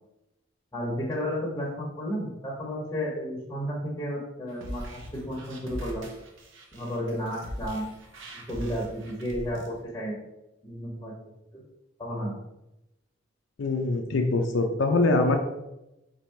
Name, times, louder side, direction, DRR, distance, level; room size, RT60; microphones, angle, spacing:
voice 1, 0.7-6.0 6.7-7.9 8.5-10.2 10.6-11.6 12.0-12.4, equal, 20° left, -4 dB, 0.9 m, -32 dB
sound 1, 4.5-9.7, equal, 90° right, 0.9 m, -40 dB
voice 2, 13.6-15.4, left 2 dB, 80° left, 3 dB, 0.4 m, -23 dB
4.1 x 2.6 x 4.5 m, 0.92 s
head